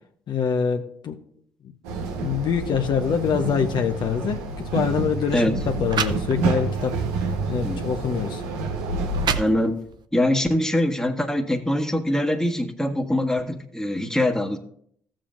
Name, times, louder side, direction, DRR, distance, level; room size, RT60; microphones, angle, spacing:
voice 1, 0.3-1.2 2.2-4.4 4.7-7.0 7.5-8.4, left 7 dB, 55° left, 4 dB, 0.9 m, -24 dB
sound 1, 1.8-9.3, right 3 dB, 80° right, 1.1 m, -28 dB
sound 2, 4.6-4.8 5.5-5.6 5.9-6.8 7.4-7.5 8.3-8.4 8.9-10.0, right 7 dB, 55° right, 0.7 m, -29 dB
voice 2, 9.3-9.8 10.1-14.6, left 1 dB, 5° left, 4 dB, 1.5 m, -23 dB
15.5 x 7.6 x 2.5 m, 0.66 s
hypercardioid pair, 45°, 9 cm